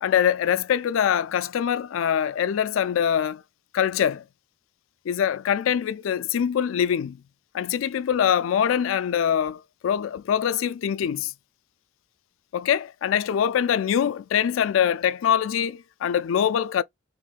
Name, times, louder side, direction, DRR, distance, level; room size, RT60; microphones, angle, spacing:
voice 1, 0.0-3.4 3.7-4.2 5.1-7.2 7.5-11.3 12.5-16.8, left 8 dB, 80° left, 0.3 m, -23 dB
3.6 x 2.6 x 2.4 m
head